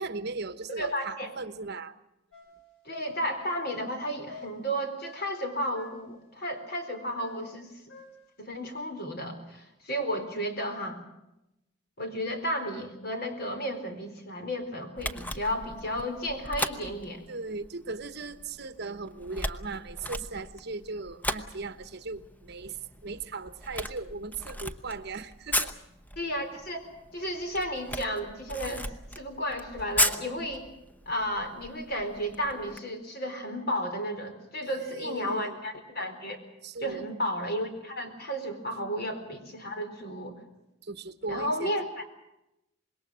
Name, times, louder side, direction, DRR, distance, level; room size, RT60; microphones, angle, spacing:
voice 1, 0.0-1.9 9.3-9.4 17.3-22.8 23.0-25.7 34.6-35.6 36.6-37.0 40.8-41.7, right 3 dB, 55° right, 11 dB, 1.2 m, -38 dB
voice 2, 0.7-1.3 2.8-7.7 8.4-11.0 12.0-17.3 26.2-26.9 27.1-28.9 29.2-30.7 31.1-36.4 36.8-40.3 41.3-42.0, equal, 50° left, 6 dB, 4.1 m, -33 dB
sound 1, 2.3-5.5 5.7-6.2 7.2-8.4, left 2 dB, 70° left, 5.0 m, -49 dB
Camera, 15.0-32.8, left 1 dB, 10° left, 0.9 m, -36 dB
26.0 x 21.5 x 6.4 m, 0.88 s
head